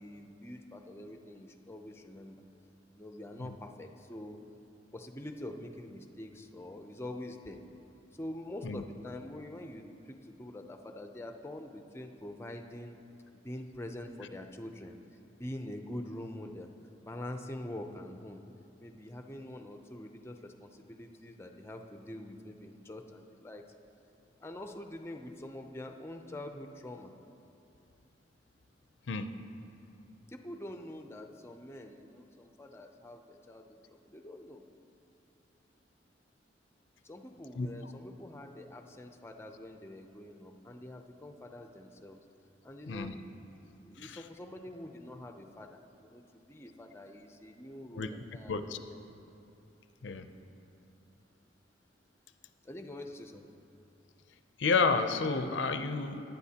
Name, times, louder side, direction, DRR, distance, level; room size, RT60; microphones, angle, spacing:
voice 1, 0.0-2.4 2.9-4.4 4.9-7.6 8.1-13.0 13.3-15.0 15.4-16.7 17.0-18.4 18.8-23.6 24.4-27.1 30.3-34.6 37.0-42.2 42.6-43.1 43.8-49.0 52.6-53.5, left 1 dB, 15° left, 5 dB, 0.5 m, -45 dB
voice 2, 48.5-48.8 50.0-50.3 54.6-56.3, left 4 dB, 80° left, 9 dB, 0.5 m, -30 dB
17.5 x 10.5 x 2.9 m, 2.7 s
head